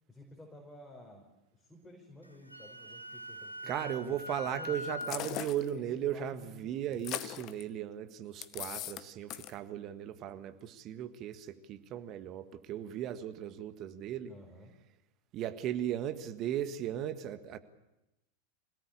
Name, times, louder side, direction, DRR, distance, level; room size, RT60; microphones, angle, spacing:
voice 1, 0.1-1.3 1.5-4.2 4.4-4.7 5.0-5.4 5.7-7.0 14.3-14.7, left 1 dB, 5° left, -2 dB, 5.2 m, -52 dB
Wind instrument woodwind instrument, 2.2-5.2, equal, 85° right, 1.7 m, -42 dB
voice 2, 3.7-14.3 15.3-17.6, right 10 dB, 35° right, 10 dB, 1.6 m, -37 dB
sound 1, 5.0-5.7 6.9-7.6 8.4-9.0 9.3-9.5, left 13 dB, 35° left, 1.0 m, -39 dB
25.5 x 18.0 x 8.7 m, 0.96 s
figure-of-eight pair, 90°, 0 cm